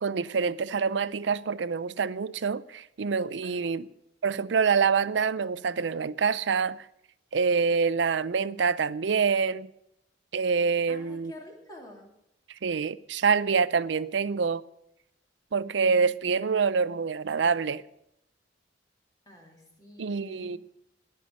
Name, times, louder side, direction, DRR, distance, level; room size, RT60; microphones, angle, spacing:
voice 1, 0.0-3.9 4.2-6.8 7.3-9.7 10.3-11.3 12.6-14.6 15.5-17.8 20.0-20.6, right 5 dB, 75° right, 0.5 m, -26 dB
voice 2, 3.4-3.7 10.9-12.1 19.2-20.6, left 1 dB, 20° left, 3.3 m, -49 dB
20.0 x 6.7 x 6.6 m
head